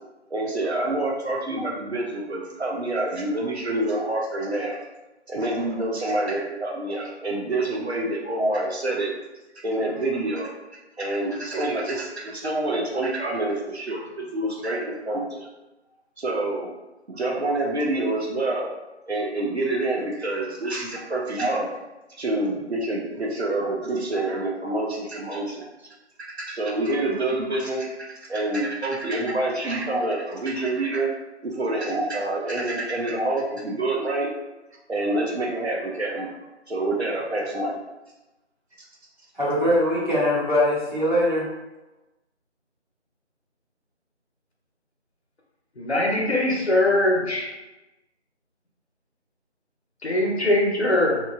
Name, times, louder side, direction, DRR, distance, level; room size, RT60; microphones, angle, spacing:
voice 1, 0.3-4.8 5.3-9.1 9.5-10.5 11.0-15.5 16.2-16.7 17.1-18.7 19.1-21.7 22.2-25.7 26.2-31.1 31.4-34.3 34.9-36.3 36.7-37.8, right 2 dB, 65° right, -1 dB, 0.6 m, -27 dB
voice 2, 39.3-41.5, left 1 dB, 40° right, -8 dB, 1.0 m, -22 dB
voice 3, 45.8-47.5 50.0-51.2, left 1 dB, 65° left, -2 dB, 0.8 m, -21 dB
3.0 x 2.1 x 2.3 m, 1.0 s
figure-of-eight pair, 170°, 36 cm